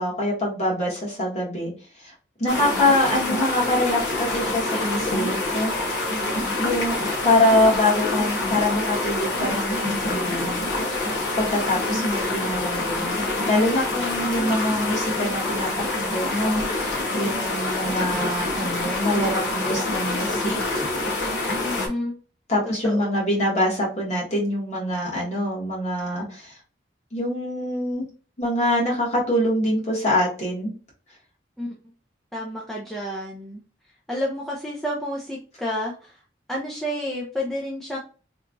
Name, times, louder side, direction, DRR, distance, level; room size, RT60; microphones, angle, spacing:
voice 1, 0.0-1.7 2.0-2.1 2.4-5.7 6.6-7.0 7.2-11.0 11.4-20.9 22.5-26.6 27.1-28.0 28.4-30.7, left 1 dB, 35° left, -4 dB, 1.2 m, -24 dB
sound 1, 2.5-21.9, left 2 dB, 70° left, 0.8 m, -26 dB
voice 2, 21.6-22.2 22.8-23.1 31.6-31.7 32.3-33.6 34.1-36.2 36.5-38.0, equal, ahead, -4 dB, 0.4 m, -30 dB
2.9 x 2.3 x 2.5 m, 0.37 s
head